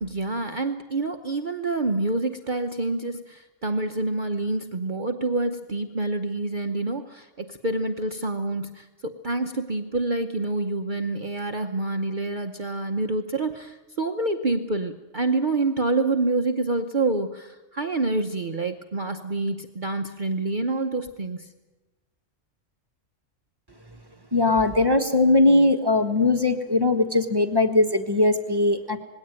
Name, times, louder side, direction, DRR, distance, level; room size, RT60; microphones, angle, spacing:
voice 1, 0.0-21.5, right 2 dB, 45° right, 5 dB, 0.9 m, -27 dB
voice 2, 24.3-29.0, left 2 dB, 20° right, 7 dB, 1.2 m, -20 dB
20.0 x 17.0 x 9.0 m, 1.1 s
omnidirectional pair, 1.3 m